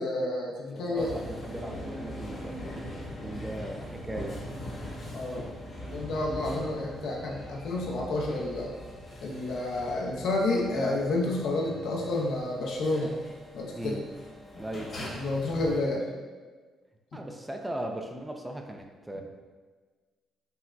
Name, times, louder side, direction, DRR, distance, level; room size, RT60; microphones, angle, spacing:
voice 1, 0.0-1.1 5.1-5.5 5.9-8.7 9.2-13.2 13.5-13.9 15.1-16.0, left 2 dB, 75° left, -2 dB, 0.7 m, -30 dB
voice 2, 0.7-2.5 3.2-4.4 13.8-14.1 14.6-14.9 17.1-19.2, right 1 dB, 10° right, 3 dB, 0.4 m, -38 dB
sound 1, 1.0-15.8, equal, 45° left, 1.1 m, -41 dB
5.6 x 2.1 x 2.5 m, 1.4 s
cardioid pair, 90°, 0 cm